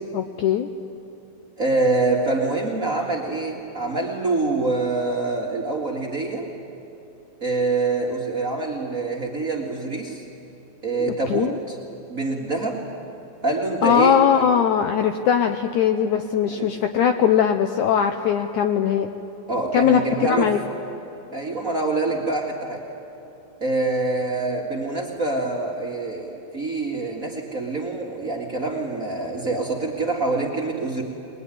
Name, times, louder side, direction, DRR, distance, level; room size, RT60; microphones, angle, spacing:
voice 1, 0.1-0.7 11.1-11.6 13.8-19.1 19.7-20.0 20.3-20.6, left 8 dB, 75° left, 7 dB, 1.8 m, -20 dB
voice 2, 1.6-6.5 7.4-10.2 10.8-11.8 12.1-12.8 13.4-14.4 16.5-16.7 19.5-20.5 21.3-22.9 23.6-31.0, right 3 dB, 30° right, -1 dB, 1.7 m, -25 dB
22.0 x 21.5 x 9.9 m, 3.0 s
omnidirectional pair, 4.2 m